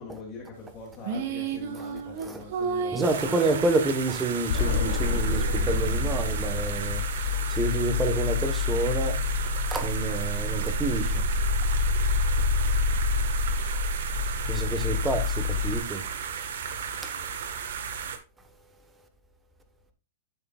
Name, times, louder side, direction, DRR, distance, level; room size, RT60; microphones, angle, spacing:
voice 1, 0.0-3.8 17.2-17.3, left 4 dB, 25° left, 2.9 m, -43 dB
sound 1, 1.0-4.2, right 5 dB, 55° right, 1.7 m, -32 dB
voice 2, 2.9-7.0 7.5-9.2 9.7-11.2 14.5-16.0 17.0-17.1, right 2 dB, 10° right, 1.3 m, -28 dB
sound 2, 3.0-18.2, right 7 dB, 75° right, 1.6 m, -35 dB
sound 3, 4.5-15.8, left 3 dB, 65° left, 1.6 m, -27 dB
11.0 x 6.7 x 2.5 m
hypercardioid pair, 150°, 0 cm